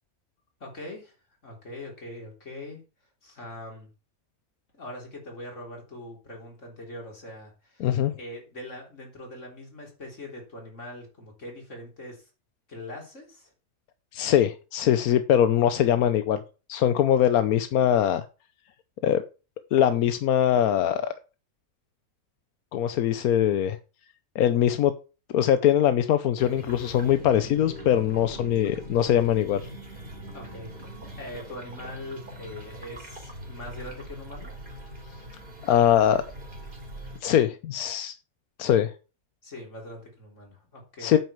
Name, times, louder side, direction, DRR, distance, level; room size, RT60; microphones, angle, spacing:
voice 1, 0.6-1.1 1.4-2.8 3.2-3.9 4.7-7.9 8.2-12.3 12.7-13.5 30.3-34.6 39.4-41.2, left 1 dB, 55° left, 0 dB, 4.1 m, -42 dB
voice 2, 7.8-8.1 14.1-16.4 16.7-18.2 19.0-19.2 19.7-21.0 22.7-23.8 24.3-24.9 25.3-29.6 35.6-36.2 37.2-38.1 38.6-38.9 41.0-41.2, left 10 dB, 85° left, 11 dB, 1.2 m, -22 dB
sound 1, 26.4-37.2, equal, 35° right, 3.1 m, -42 dB
9.2 x 6.2 x 7.1 m, 0.34 s
omnidirectional pair, 1.5 m